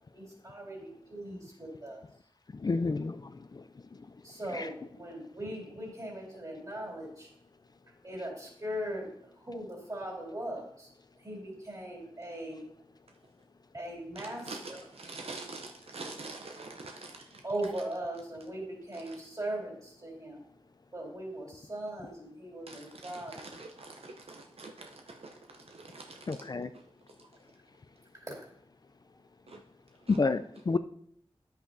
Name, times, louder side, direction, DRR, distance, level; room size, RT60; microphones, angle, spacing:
voice 1, 0.1-2.0 4.2-7.3 8.0-9.1 9.4-10.9 11.2-12.6 13.7-14.8 17.4-20.4 20.9-23.4 28.2-28.5 28.9-29.0, right 1 dB, 35° right, -1 dB, 3.4 m, -39 dB
voice 2, 2.6-3.6 4.5-4.7 26.3-26.7 30.1-30.8, left 3 dB, 40° left, 11 dB, 0.4 m, -30 dB
voice 3, 14.5-17.2 22.7-24.9 25.2-25.3 25.7-26.2 29.5-29.6 30.1-30.2, right 3 dB, 80° right, 3 dB, 0.6 m, -45 dB
10.0 x 8.2 x 2.6 m, 0.67 s
wide cardioid pair, 85°, 10 cm